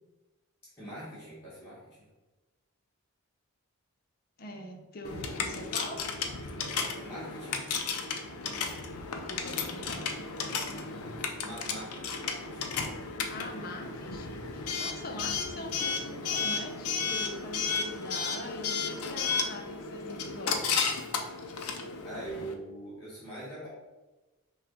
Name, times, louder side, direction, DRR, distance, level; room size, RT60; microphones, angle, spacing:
voice 1, 0.8-1.8 7.0-7.6 11.4-12.7 22.0-23.7, right 1 dB, 10° left, -11 dB, 1.2 m, -43 dB
voice 2, 4.4-6.0 9.2-10.1 13.3-20.8, left 1 dB, 40° left, 3 dB, 0.6 m, -43 dB
Coin (dropping) / Alarm, 5.0-22.5, left 5 dB, 85° left, 0.5 m, -34 dB
5.8 x 2.4 x 3.6 m, 1.1 s
head